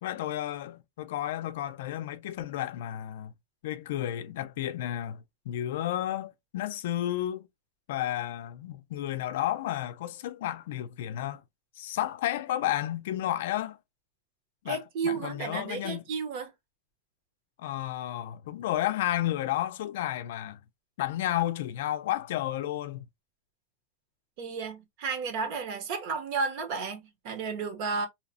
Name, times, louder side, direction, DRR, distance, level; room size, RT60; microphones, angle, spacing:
voice 1, 0.0-3.3 3.6-7.5 7.9-11.4 11.8-13.8 14.6-16.1 17.6-20.6 21.0-23.0, left 13 dB, 70° left, 0.4 m, -32 dB
voice 2, 14.7-16.5 24.4-28.1, right 5 dB, 45° right, 0.8 m, -32 dB
2.7 x 2.0 x 2.6 m
supercardioid pair, 170°, 0 cm